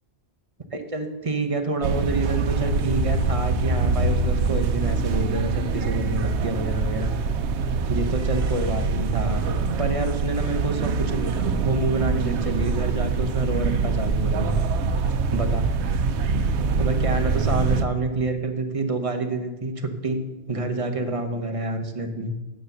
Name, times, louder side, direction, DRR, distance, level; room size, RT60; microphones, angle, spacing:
voice 1, 0.7-7.1 7.9-9.5 9.8-14.6 15.3-15.6 16.8-22.4, right 2 dB, 35° right, 6 dB, 1.0 m, -28 dB
sound 1, 1.8-17.8, right 4 dB, 85° right, 1.0 m, -24 dB
9.5 x 7.5 x 6.7 m, 1.1 s
omnidirectional pair, 1.1 m